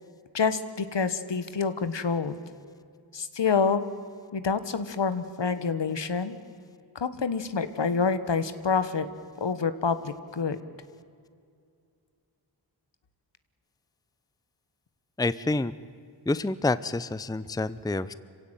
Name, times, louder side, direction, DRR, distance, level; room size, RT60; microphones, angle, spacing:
voice 1, 0.3-2.4 3.1-3.8 4.3-6.4 6.9-9.1 9.4-10.6, left 5 dB, 70° left, 12 dB, 1.5 m, -27 dB
voice 2, 15.2-15.7 16.3-18.1, left 2 dB, 10° left, 16 dB, 0.6 m, -28 dB
26.0 x 16.5 x 9.2 m, 2.4 s
wide cardioid pair, 65°, 45 cm